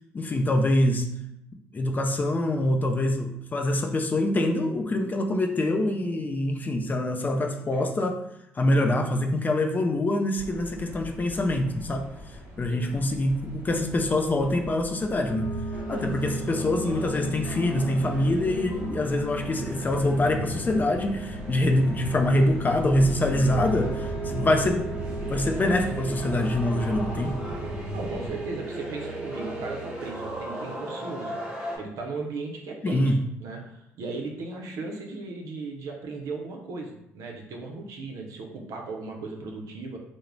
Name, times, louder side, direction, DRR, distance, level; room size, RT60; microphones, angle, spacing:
voice 1, 0.1-1.1 1.7-8.2 8.6-15.5 15.9-27.4 32.8-33.3, left 1 dB, 30° left, 4 dB, 0.4 m, -25 dB
sound 1, 10.3-28.3, equal, 35° right, 1.2 m, -39 dB
sound 2, 15.3-30.4, right 2 dB, 50° left, 0.8 m, -37 dB
sound 3, 15.7-31.8, right 1 dB, 15° right, 1.0 m, -38 dB
voice 2, 27.9-31.4 31.8-40.0, right 3 dB, 70° right, 2 dB, 0.5 m, -37 dB
2.4 x 2.0 x 3.1 m, 0.81 s
supercardioid pair, 65°, 6 cm